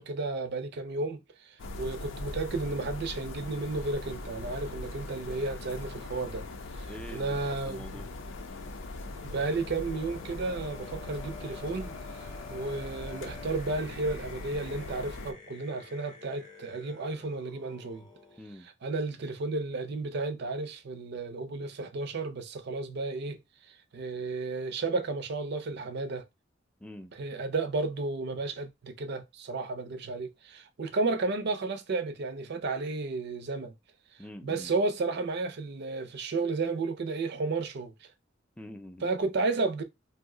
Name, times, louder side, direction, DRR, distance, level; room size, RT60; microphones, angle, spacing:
voice 1, 0.0-6.5 6.8-8.0 9.2-18.1 18.8-23.4 23.9-26.3 27.1-33.7 34.4-38.1 39.0-39.8, right 3 dB, 60° right, 0.5 m, -33 dB
sound 1, 1.6-15.3, left 2 dB, 75° left, 0.5 m, -41 dB
voice 2, 6.9-8.1 18.4-18.7 26.8-27.1 34.2-34.7 38.6-39.1, equal, 5° left, 0.3 m, -45 dB
sound 2, 7.8-18.4, left 3 dB, 20° left, 0.7 m, -51 dB
2.6 x 2.1 x 3.6 m
head